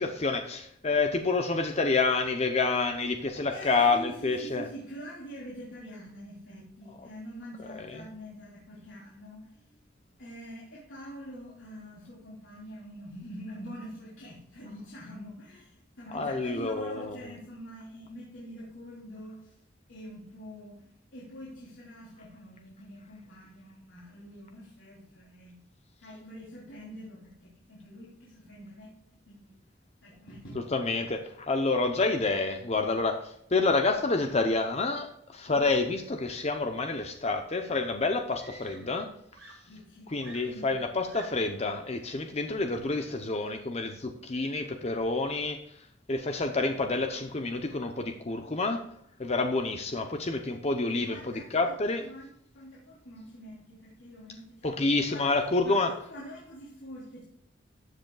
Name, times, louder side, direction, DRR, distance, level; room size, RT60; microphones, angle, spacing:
voice 1, 0.0-4.6 7.9-8.0 16.1-17.2 30.7-39.1 40.1-45.6 46.1-48.8 49.2-52.1 54.6-55.9, left 3 dB, 35° left, 6 dB, 0.7 m, -28 dB
voice 2, 3.5-9.8 10.2-19.6 19.9-25.6 26.0-28.9 29.2-29.5 30.0-30.6 35.5-35.8 39.6-40.1 40.5-40.8 50.8-51.8 52.0-55.4 55.6-57.2, equal, 85° left, -6 dB, 3.2 m, -45 dB
Screaming, 38.3-39.1 39.3-41.6 42.6-42.9, right 2 dB, 80° right, 2.1 m, -51 dB
13.5 x 7.9 x 2.3 m, 0.72 s
head